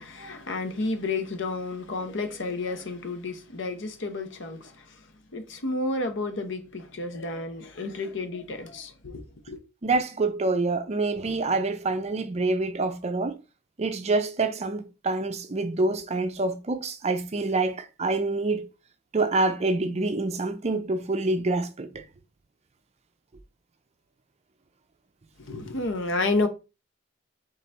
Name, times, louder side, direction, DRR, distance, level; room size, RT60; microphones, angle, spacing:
voice 1, 0.0-9.6 25.4-26.5, left 3 dB, 65° left, 0.9 m, -31 dB
voice 2, 9.8-13.4 13.8-18.7 19.1-22.0, right 3 dB, 30° right, 0.5 m, -26 dB
4.1 x 3.8 x 3.3 m
head